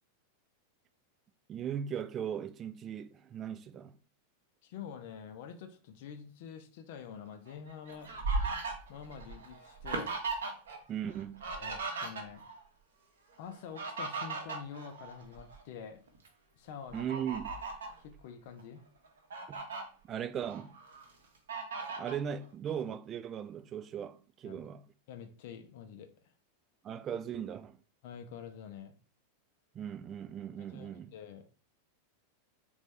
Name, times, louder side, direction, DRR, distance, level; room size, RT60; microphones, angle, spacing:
voice 1, 1.5-3.9 10.9-11.4 16.9-17.6 19.5-19.6 20.1-20.7 22.0-24.8 26.8-27.8 29.7-31.1, right 8 dB, 30° right, 0.3 m, -38 dB
voice 2, 4.6-8.1 8.9-10.2 11.5-12.5 13.4-16.0 16.6-17.0 18.0-18.8 24.4-24.7 25.1-26.3 28.0-28.9 30.6-31.4, left 7 dB, 50° left, 0.6 m, -47 dB
Fowl, 7.5-10.8 11.1-12.6 13.5-15.6 16.1-16.3 16.9-18.0 18.6-18.7 19.0-19.8 20.4-21.0 21.5-22.2, right 3 dB, 60° right, 1.0 m, -38 dB
4.0 x 2.6 x 3.3 m
figure-of-eight pair, 90°, 0 cm